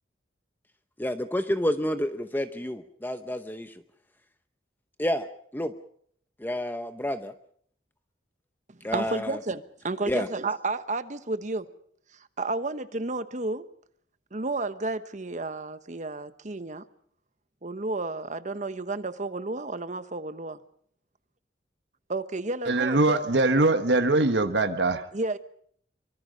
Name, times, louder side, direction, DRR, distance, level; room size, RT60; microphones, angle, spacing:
voice 1, 1.0-3.7 5.0-5.3 5.5-5.7 6.4-7.3 8.8-9.4 10.1-10.3, left 1 dB, 10° left, 9 dB, 0.8 m, -29 dB
voice 2, 8.7-11.7 12.1-13.6 14.3-16.8 17.6-20.6 22.1-23.2 25.1-25.4, right 2 dB, 45° right, 12 dB, 1.1 m, -32 dB
voice 3, 22.7-25.0, right 2 dB, 80° right, 8 dB, 1.4 m, -22 dB
24.5 x 24.0 x 5.3 m, 0.63 s
head